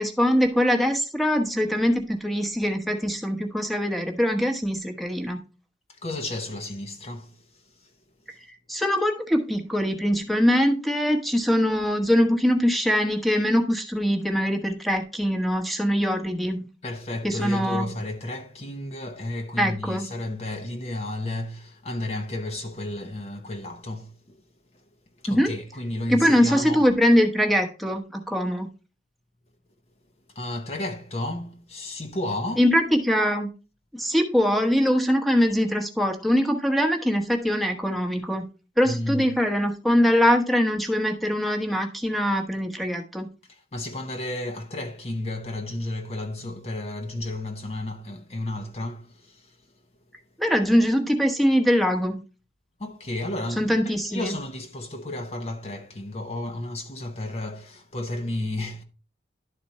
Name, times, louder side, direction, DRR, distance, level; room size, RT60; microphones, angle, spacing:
voice 1, 0.0-5.4 8.7-16.7 17.2-17.9 19.6-20.1 25.3-25.5 26.1-28.7 32.6-33.5 33.9-38.4 38.8-43.3 50.4-52.2 53.6-54.3, equal, ahead, 1.1 m, -22 dB
voice 2, 5.9-7.9 8.3-8.4 16.8-24.4 24.7-24.8 25.2-26.9 30.3-32.7 38.8-39.4 43.5-49.6 52.8-58.8, left 1 dB, 35° left, 0.8 m, -32 dB
11.5 x 4.3 x 4.2 m
head